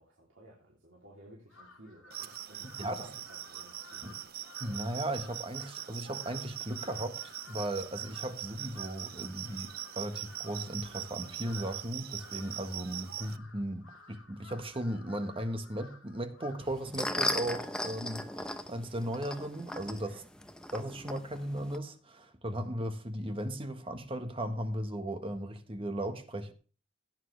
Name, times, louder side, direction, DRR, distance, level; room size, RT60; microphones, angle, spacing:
voice 1, 0.0-4.3, right 1 dB, 65° right, 3.1 m, -56 dB
Crow, 1.5-16.9, left 3 dB, 85° left, 2.4 m, -55 dB
sound 1, 2.1-13.4, right 13 dB, 50° right, 0.6 m, -42 dB
voice 2, 2.8-3.1 4.0-4.1 4.6-20.2 20.7-26.5, right 1 dB, 25° right, 1.4 m, -37 dB
sound 2, 16.6-21.8, left 1 dB, 5° left, 0.8 m, -37 dB
16.5 x 8.9 x 3.3 m
head